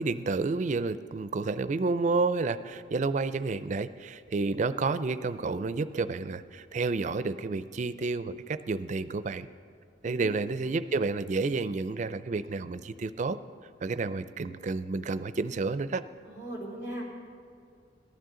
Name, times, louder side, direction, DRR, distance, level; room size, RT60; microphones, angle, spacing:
voice 1, 0.0-9.5 10.0-13.4 13.8-16.1, right 3 dB, 40° right, 13 dB, 0.4 m, -30 dB
voice 2, 10.0-10.5 16.2-17.0, right 1 dB, 70° left, -5 dB, 3.9 m, -39 dB
18.0 x 12.0 x 3.8 m, 2.3 s
head